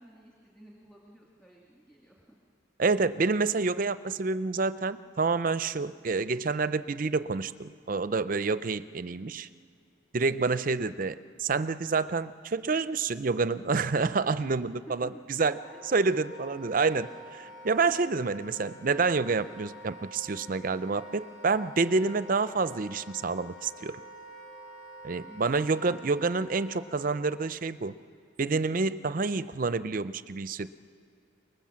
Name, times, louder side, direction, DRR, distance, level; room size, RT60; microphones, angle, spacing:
voice 1, 0.0-2.4 14.9-15.3 15.6-16.0 17.4-17.5 25.2-25.8, right 1 dB, 5° left, -3 dB, 2.0 m, -53 dB
voice 2, 2.8-9.5 10.1-15.1 15.4-15.6 15.9-24.0 25.0-27.9 28.4-30.7, right 4 dB, 45° right, 14 dB, 0.5 m, -28 dB
Wind instrument woodwind instrument, 15.4-27.3, left 1 dB, 85° left, 2.6 m, -48 dB
25.0 x 19.5 x 7.5 m, 2.4 s
head